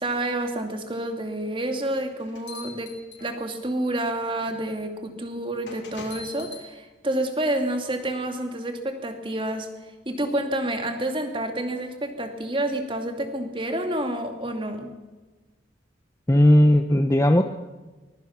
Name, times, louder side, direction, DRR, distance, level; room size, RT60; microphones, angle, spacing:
voice 1, 0.0-2.9 3.2-9.7 10.1-14.9, right 1 dB, 25° right, 6 dB, 2.6 m, -29 dB
sound 1, 1.9-3.7 4.5-4.6 5.7-6.7, left 4 dB, 80° left, 6.4 m, -42 dB
voice 2, 16.3-17.4, left 1 dB, 15° left, 7 dB, 0.8 m, -16 dB
24.0 x 21.5 x 6.0 m, 1.3 s
head